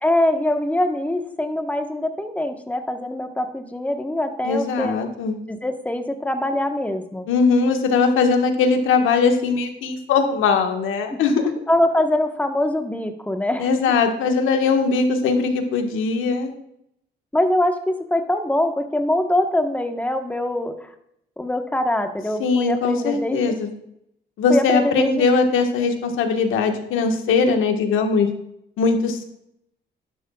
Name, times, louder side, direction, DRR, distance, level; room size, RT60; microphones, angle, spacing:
voice 1, 0.0-4.9 5.5-7.3 11.1-11.2 11.7-13.7 17.3-20.9 21.4-23.4 24.5-25.3, left 1 dB, 5° left, 5 dB, 1.3 m, -23 dB
voice 2, 4.4-5.4 7.3-11.5 13.6-16.5 22.4-23.7 24.4-28.3 28.8-29.2, left 4 dB, 85° left, 4 dB, 1.6 m, -20 dB
12.0 x 11.0 x 2.4 m, 0.77 s
cardioid pair, 90°, 20 cm